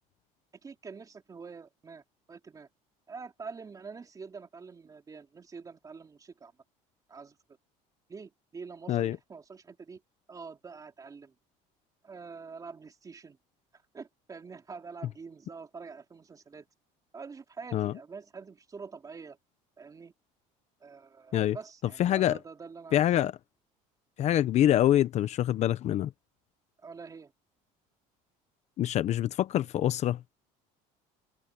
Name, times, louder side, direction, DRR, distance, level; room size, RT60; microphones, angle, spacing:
voice 1, 0.6-2.0 2.3-2.7 3.1-6.5 7.1-7.4 8.1-10.0 10.3-11.3 12.0-13.4 13.7-16.7 17.1-19.4 19.8-20.1 20.8-23.1 26.8-27.3, right 5 dB, 20° right, 3.4 m, -46 dB
voice 2, 22.0-22.4 22.9-23.3 24.2-26.1 28.8-30.2, left 12 dB, 45° left, 0.9 m, -25 dB
cardioid pair, 130°, 16 cm